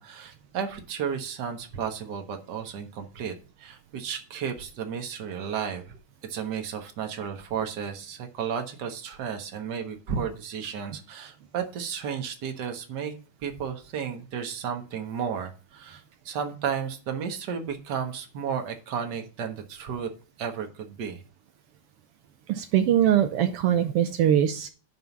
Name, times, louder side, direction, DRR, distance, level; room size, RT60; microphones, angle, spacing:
voice 1, 0.0-6.0 6.3-13.1 13.4-20.1 20.4-21.2, right 7 dB, 50° right, 5 dB, 1.4 m, -33 dB
voice 2, 22.5-24.7, right 10 dB, 85° right, 8 dB, 1.3 m, -22 dB
11.0 x 3.9 x 7.0 m, 0.38 s
omnidirectional pair, 3.5 m